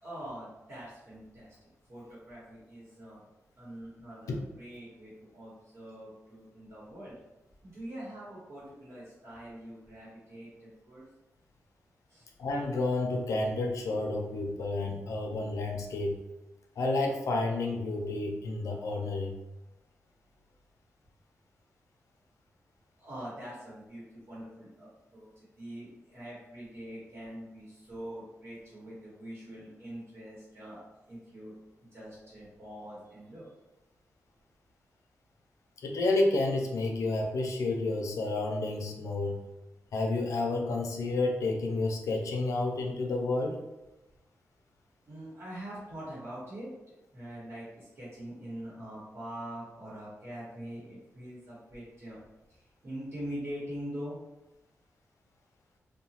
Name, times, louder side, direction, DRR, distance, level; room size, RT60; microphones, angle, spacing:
voice 1, 0.0-1.5 1.9-3.2 3.6-7.1 7.6-11.0 12.1-12.3 23.0-30.8 31.1-31.5 31.9-33.5 45.1-52.2 52.8-54.2, equal, 55° right, -7 dB, 1.0 m, -44 dB
voice 2, 12.4-16.2 16.8-19.4 35.8-39.4 39.9-43.6, left 2 dB, 85° left, 2 dB, 0.5 m, -30 dB
2.9 x 2.2 x 2.8 m, 0.98 s
wide cardioid pair, 155°, 5 cm